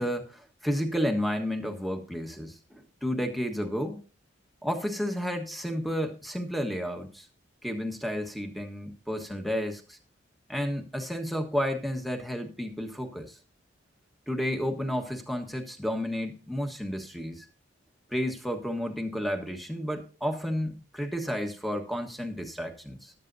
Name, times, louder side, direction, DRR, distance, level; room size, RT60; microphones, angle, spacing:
voice 1, 0.0-4.0 4.6-7.3 7.6-10.0 10.5-13.4 14.3-17.5 18.1-23.1, equal, ahead, 5 dB, 1.4 m, -31 dB
14.0 x 11.5 x 2.7 m, 0.36 s
head